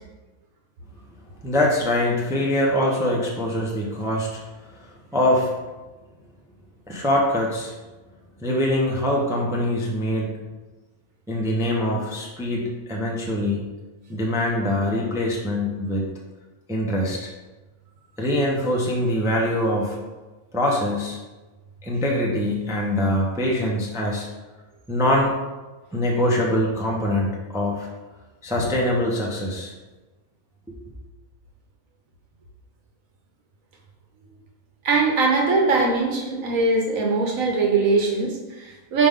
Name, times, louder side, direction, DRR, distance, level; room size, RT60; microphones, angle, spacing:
voice 1, 1.4-4.3 4.8-5.5 6.9-7.7 8.4-10.3 11.3-13.6 14.1-16.1 16.7-17.3 18.2-20.0 20.5-21.2 21.8-24.3 24.9-25.3 25.9-27.9 28.4-29.7, left 1 dB, 5° right, -2 dB, 0.7 m, -23 dB
voice 2, 34.8-39.1, right 3 dB, 65° right, 0 dB, 1.5 m, -21 dB
5.6 x 5.2 x 3.7 m, 1.2 s
omnidirectional pair, 1.6 m